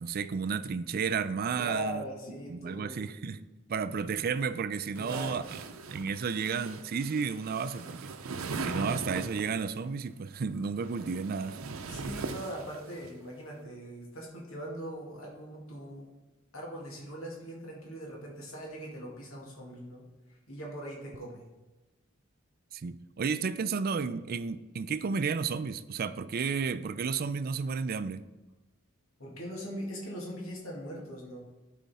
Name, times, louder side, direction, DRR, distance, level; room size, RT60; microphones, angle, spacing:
voice 1, 0.0-2.0 2.5-5.6 5.9-8.1 8.6-11.6 22.7-28.3, right 5 dB, 45° right, 13 dB, 0.4 m, -32 dB
voice 2, 1.6-3.1 5.0-5.5 11.8-16.1 16.5-21.5 29.2-31.4, right 1 dB, 90° left, -2 dB, 2.0 m, -41 dB
sound 1, 4.9-9.6 10.6-13.1, right 4 dB, 85° right, 0.6 m, -40 dB
12.5 x 4.2 x 4.2 m, 1.1 s
head